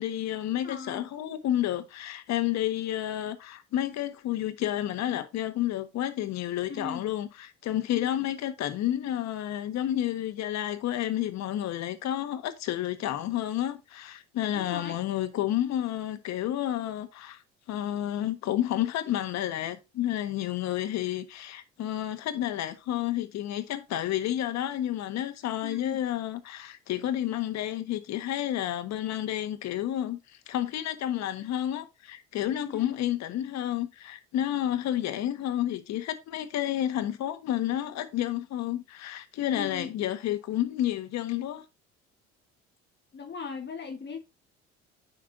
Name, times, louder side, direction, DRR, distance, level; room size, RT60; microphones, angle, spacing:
voice 1, 0.0-17.4 17.7-41.6, left 12 dB, 60° left, 1.4 m, -30 dB
voice 2, 0.6-1.0 6.7-7.0 7.9-8.2 14.5-15.0 25.6-26.0 32.6-32.9 39.5-39.9 43.1-44.2, left 5 dB, 35° left, 1.3 m, -38 dB
9.8 x 5.4 x 2.6 m
hypercardioid pair, 65°, 30 cm